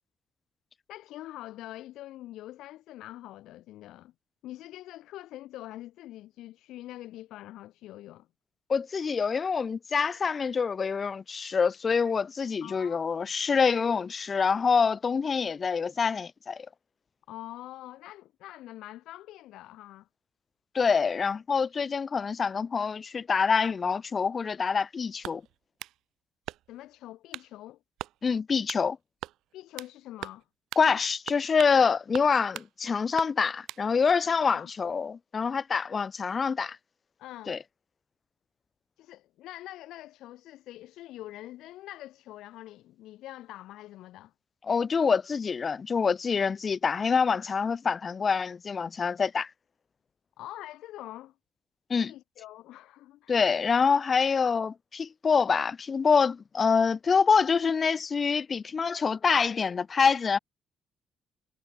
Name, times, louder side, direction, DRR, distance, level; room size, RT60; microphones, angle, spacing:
voice 1, 0.9-4.1 4.4-8.3 12.6-13.3 17.3-20.1 26.7-27.8 29.5-30.4 34.5-34.7 37.2-37.6 39.0-44.3 50.4-51.3 52.0-53.4, left 15 dB, 80° left, 1.4 m, -44 dB
voice 2, 8.7-16.7 20.7-25.4 28.2-29.0 30.8-36.8 37.5-37.6 44.7-49.5 51.9-52.1 53.3-60.4, left 5 dB, 40° left, 0.3 m, -26 dB
sound 1, 25.2-26.0 26.5-26.9 27.3-27.5 28.0-28.2 28.7-28.9 29.2-29.9 30.2-30.4 30.7-30.9 31.3-31.8 32.1-32.7 33.2-33.8, right 14 dB, 80° right, 2.3 m, -41 dB
supercardioid pair, 75°, 0 cm